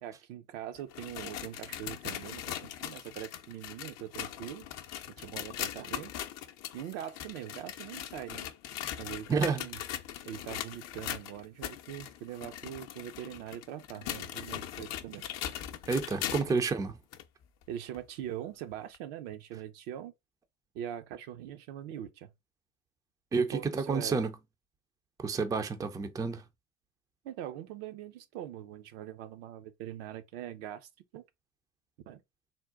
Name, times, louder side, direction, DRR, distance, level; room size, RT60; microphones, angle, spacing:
voice 1, 0.0-4.7 5.1-6.1 6.7-8.5 9.0-9.8 10.2-15.2 17.7-20.1 20.7-22.3 23.4-24.3 27.2-31.2 32.1-32.2, right 11 dB, 55° right, 0.6 m, -42 dB
sound 1, 0.8-16.6 17.1-17.2 17.9-18.0 18.9-19.0, left 11 dB, 45° left, 0.6 m, -40 dB
voice 2, 9.3-9.6 15.9-17.0 23.3-24.3 25.2-26.4, right 4 dB, 10° right, 0.4 m, -30 dB
3.6 x 2.1 x 3.7 m
hypercardioid pair, 80°, 36 cm